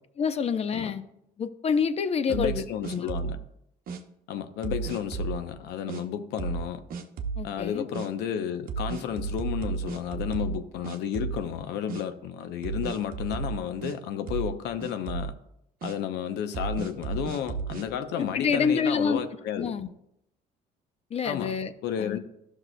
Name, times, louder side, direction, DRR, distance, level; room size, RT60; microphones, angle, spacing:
voice 1, 0.2-1.0 1.4-2.6 2.9-3.1 7.4-7.8 18.2-19.2 19.6-19.9 21.1-21.7 22.0-22.2, left 6 dB, 35° left, 0.6 m, -27 dB
voice 2, 2.3-3.4 4.3-6.8 7.4-15.4 15.8-19.8 21.2-21.5 21.8-22.2, left 9 dB, 80° left, 0.7 m, -32 dB
sound 1, 2.3-3.4 3.9-4.0 4.6-5.4 5.9-6.0 6.4-6.6 6.9-7.4 7.9-8.1 8.7-10.6 10.8-11.6 11.9-12.0 12.6-13.9 14.3-14.5 14.8-15.3 15.8-15.9 16.5-17.9, right 6 dB, 60° right, 0.8 m, -33 dB
13.0 x 6.2 x 2.2 m
cardioid pair, 110°, 17 cm